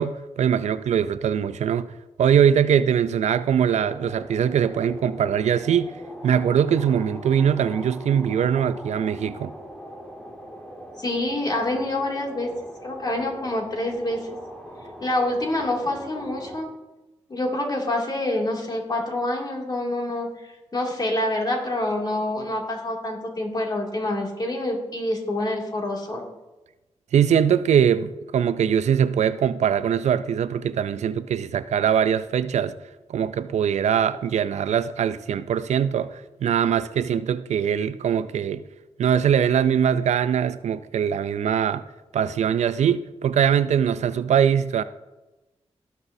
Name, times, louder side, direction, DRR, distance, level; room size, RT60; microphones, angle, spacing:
voice 1, 0.0-1.9 2.2-5.9 6.2-9.5 27.1-32.7 33.1-38.6 39.0-41.8 42.1-44.8, right 8 dB, 85° right, 0.4 m, -22 dB
sound 1, 3.6-16.6, equal, 10° left, 1.6 m, -41 dB
voice 2, 11.0-12.5 12.8-14.2 15.0-16.7 17.3-20.3 20.7-26.2, left 1 dB, 35° left, 2.5 m, -26 dB
18.0 x 6.1 x 2.7 m
cardioid pair, 80°, 12 cm